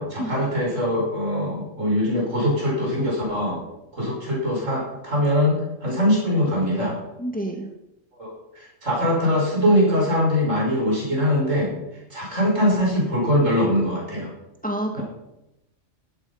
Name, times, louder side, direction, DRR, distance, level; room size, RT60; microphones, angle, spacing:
voice 1, 0.0-3.6 3.9-7.0 8.2-11.7 12.1-14.3 15.0-15.1, equal, 70° right, -3 dB, 5.5 m, -22 dB
voice 2, 7.2-7.7 14.6-15.0, right 1 dB, 5° left, 2 dB, 1.6 m, -28 dB
12.5 x 11.5 x 5.6 m, 0.89 s
omnidirectional pair, 1.4 m